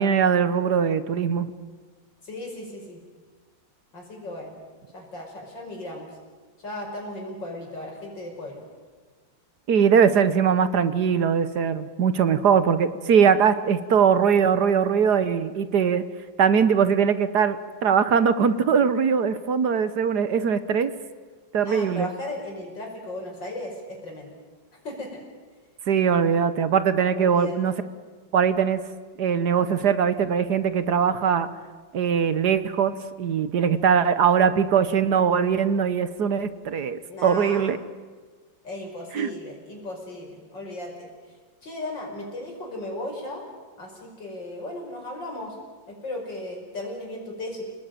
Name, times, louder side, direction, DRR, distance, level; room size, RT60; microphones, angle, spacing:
voice 1, 0.0-1.5 9.7-16.0 16.4-20.9 21.5-22.1 25.9-27.7 28.3-28.8 29.2-31.5 31.9-37.8 39.1-39.3, right 7 dB, 65° right, 13 dB, 1.5 m, -21 dB
voice 2, 2.2-3.0 3.9-4.6 4.9-6.1 6.6-8.6 21.6-24.3 24.8-25.2 27.1-27.6 37.1-37.7 38.6-41.1 41.6-43.4 43.8-45.6 45.9-47.6, left 1 dB, 75° left, 1 dB, 6.0 m, -36 dB
28.0 x 19.0 x 9.0 m, 1.4 s
omnidirectional pair, 2.0 m